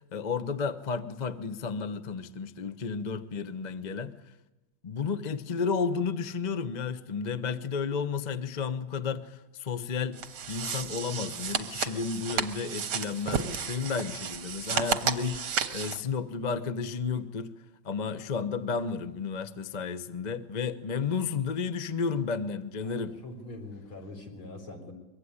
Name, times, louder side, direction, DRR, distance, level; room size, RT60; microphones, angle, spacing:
voice 1, 0.1-4.2 4.8-10.2 10.5-17.5 17.8-23.1, left 5 dB, 30° left, 0.8 m, -32 dB
sound 1, 10.1-16.0, right 7 dB, 90° right, 2.4 m, -33 dB
voice 2, 22.8-24.9, left 2 dB, 75° left, 5.2 m, -43 dB
24.0 x 23.0 x 9.8 m
omnidirectional pair, 2.3 m